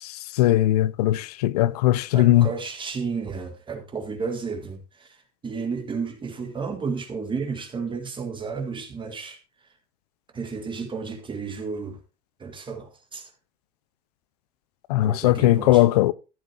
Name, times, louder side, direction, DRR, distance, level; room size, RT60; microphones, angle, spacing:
voice 1, 0.3-2.5 14.9-16.1, left 15 dB, 90° left, 0.5 m, -19 dB
voice 2, 2.1-5.2 5.4-9.4 10.3-12.0 12.4-13.3 14.9-15.8, right 5 dB, 25° right, 1.7 m, -32 dB
13.5 x 8.2 x 2.9 m
supercardioid pair, 100°, 19 cm